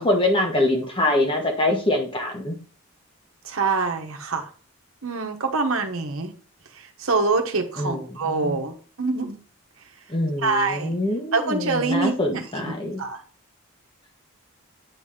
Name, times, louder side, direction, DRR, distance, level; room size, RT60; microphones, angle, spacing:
voice 1, 0.0-2.6 7.8-8.0 8.3-8.6 10.1-13.0, left 1 dB, 25° left, 2 dB, 1.2 m, -24 dB
voice 2, 3.4-4.5 5.0-6.3 6.7-9.4 10.4-11.0 11.3-13.2, right 3 dB, 75° right, 4 dB, 1.1 m, -25 dB
8.7 x 4.1 x 3.7 m, 0.40 s
head